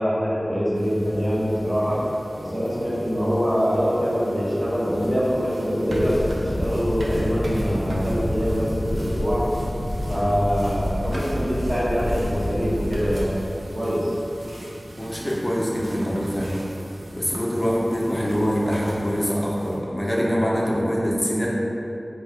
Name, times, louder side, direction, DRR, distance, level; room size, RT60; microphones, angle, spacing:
voice 1, 0.0-2.0 2.4-9.4 10.1-13.3 13.7-14.1, equal, 45° right, -9 dB, 1.2 m, -24 dB
sound 1, 0.7-19.8, right 1 dB, 85° right, 0.5 m, -39 dB
sound 2, 5.9-13.3, left 1 dB, 60° left, 0.7 m, -28 dB
voice 2, 14.9-16.6 17.2-21.5, equal, 25° left, -4 dB, 0.8 m, -24 dB
4.2 x 2.4 x 3.6 m, 2.8 s
wide cardioid pair, 40°, 0 cm